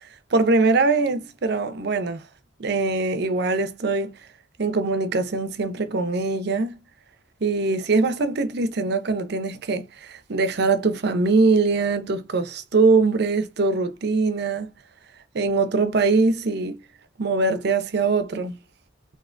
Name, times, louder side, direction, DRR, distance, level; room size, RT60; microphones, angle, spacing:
voice 1, 0.3-2.2 2.6-4.1 4.6-6.8 7.4-14.7 15.3-16.8 17.2-18.6, right 3 dB, 60° right, 0.6 m, -22 dB
3.3 x 2.9 x 2.5 m
head